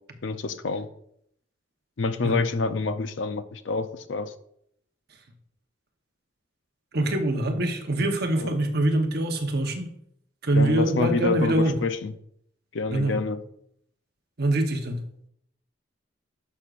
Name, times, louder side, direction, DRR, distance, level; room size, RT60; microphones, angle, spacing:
voice 1, 0.2-0.9 2.0-4.3 8.4-8.5 10.5-12.1 12.7-13.4, left 4 dB, 70° left, 11 dB, 0.6 m, -27 dB
voice 2, 6.9-9.9 10.4-11.8 12.9-13.3 14.4-15.0, right 1 dB, 55° right, 4 dB, 1.0 m, -24 dB
11.5 x 6.2 x 2.5 m, 0.71 s
head